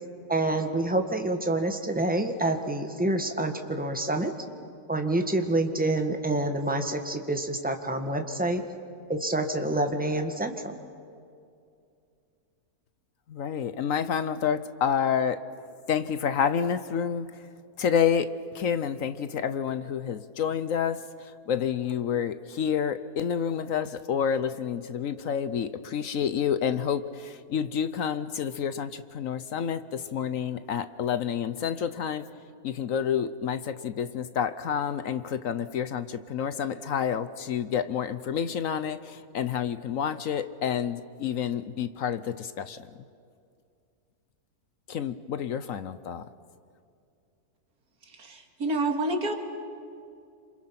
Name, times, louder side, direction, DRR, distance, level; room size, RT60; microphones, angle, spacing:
voice 1, 0.3-4.3 4.9-8.6 9.1-10.7, right 2 dB, 5° right, 5 dB, 1.6 m, -27 dB
voice 2, 13.3-15.4 15.9-17.5 17.8-32.3 32.6-42.9 44.9-46.2, left 8 dB, 65° left, 12 dB, 1.1 m, -29 dB
voice 3, 48.2-49.3, right 2 dB, 75° right, 4 dB, 2.6 m, -28 dB
27.5 x 27.0 x 5.9 m, 2.4 s
omnidirectional pair, 1.6 m